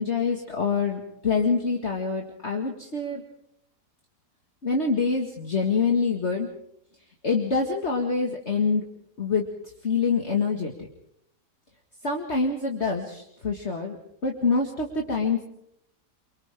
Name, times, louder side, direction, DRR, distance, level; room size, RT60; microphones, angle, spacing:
voice 1, 0.0-3.2 4.6-6.5 7.2-8.9 9.2-9.5 9.8-10.9 12.0-14.0 14.2-15.4, left 4 dB, 40° left, 1 dB, 2.3 m, -25 dB
29.5 x 24.0 x 3.7 m, 0.73 s
omnidirectional pair, 1.8 m